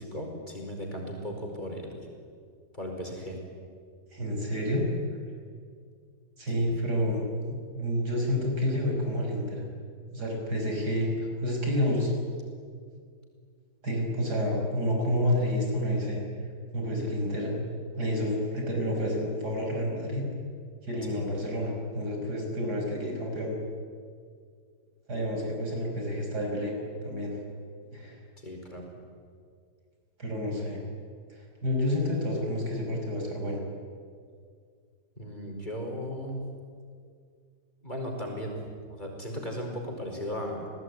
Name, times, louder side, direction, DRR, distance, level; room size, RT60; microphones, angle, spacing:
voice 1, 0.0-2.1 2.7-3.4 6.6-6.7 21.1-21.2 28.4-28.8 35.2-36.5 37.8-38.6 38.9-40.7, equal, 25° left, 1 dB, 5.1 m, -36 dB
voice 2, 4.1-4.8 6.4-9.6 10.1-12.1 13.8-16.2 16.7-17.6 17.9-20.2 20.8-23.6 25.1-26.7 27.0-27.4 27.9-28.2 30.2-30.8 31.4-33.6, equal, 65° right, 1 dB, 6.3 m, -29 dB
29.5 x 19.0 x 9.6 m, 2.1 s
omnidirectional pair, 1.9 m